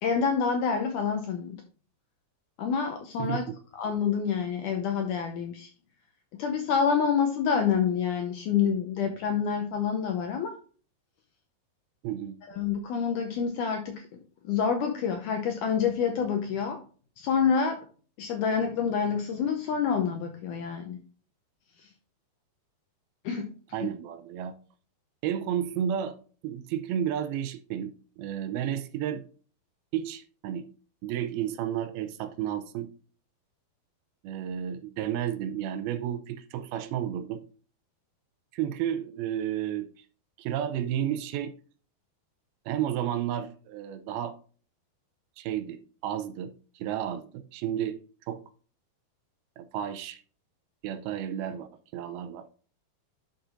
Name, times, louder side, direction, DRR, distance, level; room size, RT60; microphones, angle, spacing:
voice 1, 0.0-1.6 2.6-3.4 3.7-5.7 6.3-10.6 12.5-14.0 14.4-16.8 17.2-17.8 18.2-21.0 23.3-23.5 23.8-23.9, left 6 dB, 80° left, 1.8 m, -27 dB
voice 2, 3.2-3.6 12.0-12.4 23.7-24.6 25.2-26.2 26.4-29.2 29.9-30.7 31.0-32.9 34.2-37.4 38.5-39.9 40.4-41.5 42.7-44.4 45.4-48.0 48.3-48.4 49.6-50.2 50.8-51.7 51.9-52.5, right 10 dB, 85° right, 2.5 m, -32 dB
11.5 x 5.6 x 2.6 m
omnidirectional pair, 4.4 m